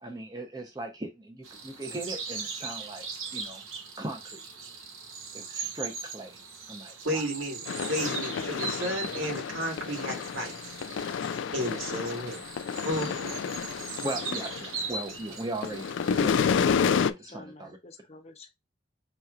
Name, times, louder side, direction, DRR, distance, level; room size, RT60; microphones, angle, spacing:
voice 1, 0.0-3.6 4.0-4.4 5.3-6.4 6.7-7.3 14.0-15.9 16.1-16.6 16.8-17.8, right 1 dB, 20° right, 0.7 m, -38 dB
sound 1, 1.4-16.3, right 5 dB, 90° right, 1.0 m, -40 dB
voice 2, 7.0-10.5 11.5-12.4 12.8-13.4, equal, 70° right, 1.9 m, -33 dB
sound 2, 7.7-15.2 15.5-17.1, left 6 dB, 65° left, 0.3 m, -30 dB
voice 3, 17.0-18.5, left 2 dB, 30° left, 0.7 m, -49 dB
5.5 x 3.0 x 2.4 m
head